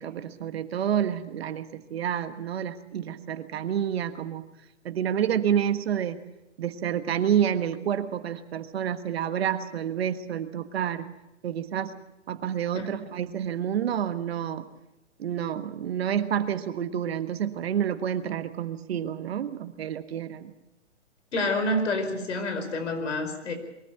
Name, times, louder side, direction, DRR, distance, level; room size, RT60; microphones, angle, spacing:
voice 1, 0.0-4.4 4.8-6.2 6.6-11.1 11.4-12.0 12.3-14.7 15.2-20.5, right 9 dB, 55° right, 10 dB, 1.6 m, -29 dB
voice 2, 21.3-23.5, left 1 dB, 70° left, 6 dB, 5.1 m, -28 dB
23.0 x 14.0 x 9.2 m, 0.95 s
hypercardioid pair, 140°, 37 cm